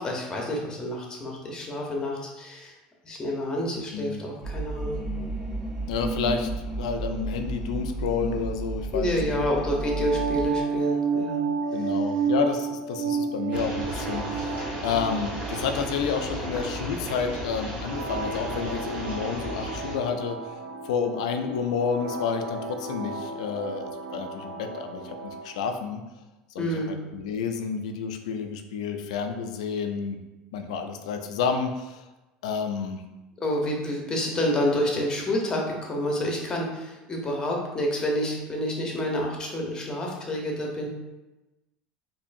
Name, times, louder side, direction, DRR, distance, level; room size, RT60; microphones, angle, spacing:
voice 1, 0.0-2.7 3.0-5.0 8.9-11.4 11.8-11.9 26.6-26.9 33.4-40.9, left 1 dB, 20° left, -1 dB, 0.9 m, -28 dB
sound 1, 4.4-10.5, right 2 dB, 15° right, 0.9 m, -32 dB
voice 2, 5.9-9.4 11.7-20.4 20.8-26.0 26.5-30.2 30.5-32.0 32.4-33.0, left 6 dB, 90° left, 6 dB, 0.4 m, -30 dB
sound 2, 9.6-25.5, right 4 dB, 50° right, 0.6 m, -32 dB
sound 3, 13.5-19.9, equal, 35° right, 1.4 m, -35 dB
4.3 x 2.7 x 2.6 m, 1.1 s
supercardioid pair, 115°, 3 cm